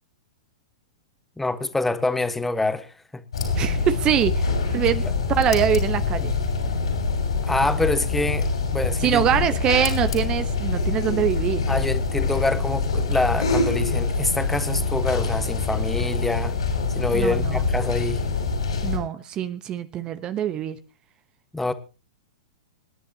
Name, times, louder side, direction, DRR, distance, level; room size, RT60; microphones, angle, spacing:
voice 1, 1.4-2.9 5.0-5.1 7.4-9.4 11.7-16.5 16.9-18.2 21.5-21.7, left 2 dB, 5° left, 1.4 m, -26 dB
sound 1, 3.3-19.0, left 4 dB, 75° left, 5.8 m, -25 dB
voice 2, 3.6-5.0 5.3-6.3 9.0-11.6 17.1-17.7 18.8-20.8, right 9 dB, 30° right, 1.0 m, -24 dB
27.0 x 10.5 x 2.9 m
figure-of-eight pair, 105°, 3 cm